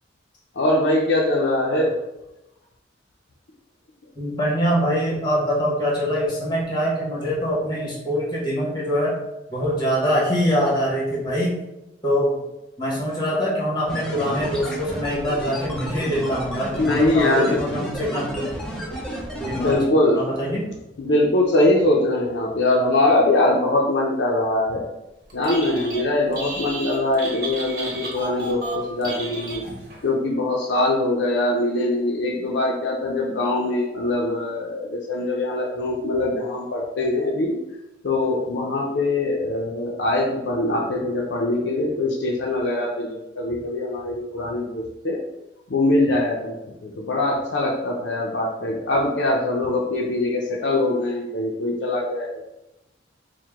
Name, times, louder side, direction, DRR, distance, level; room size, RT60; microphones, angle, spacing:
voice 1, 0.5-2.0 16.8-17.6 19.5-20.2 21.0-24.8 25.3-37.6 38.0-45.2 45.7-52.4, left 2 dB, 65° left, -2 dB, 0.5 m, -22 dB
voice 2, 4.2-9.1 9.5-11.5 12.0-12.4 12.8-18.5 19.4-20.6, equal, 20° left, -4 dB, 1.2 m, -24 dB
sound 1, 13.9-19.8, equal, 5° left, 0.6 m, -32 dB
Telephone, 25.3-26.0 26.3-30.0, right 2 dB, 50° right, 1.1 m, -33 dB
4.6 x 2.1 x 3.5 m, 0.93 s
head